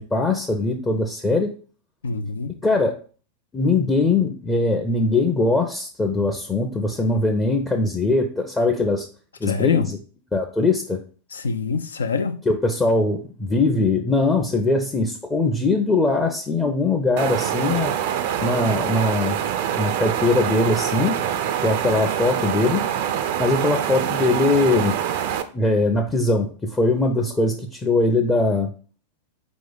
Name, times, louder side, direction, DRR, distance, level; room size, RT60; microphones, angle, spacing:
voice 1, 0.0-1.6 2.6-3.0 3.5-9.1 9.4-10.0 10.3-11.0 12.5-17.9 18.4-19.4 19.8-21.3 21.6-22.8 23.4-25.0 25.5-28.7, left 2 dB, 15° left, 0.6 m, -21 dB
voice 2, 2.0-2.6 9.4-9.9 11.3-12.4, left 4 dB, 70° left, 0.5 m, -25 dB
sound 1, 17.2-25.4, right 10 dB, 50° right, 0.4 m, -25 dB
4.6 x 3.0 x 3.9 m
figure-of-eight pair, 90°, 0 cm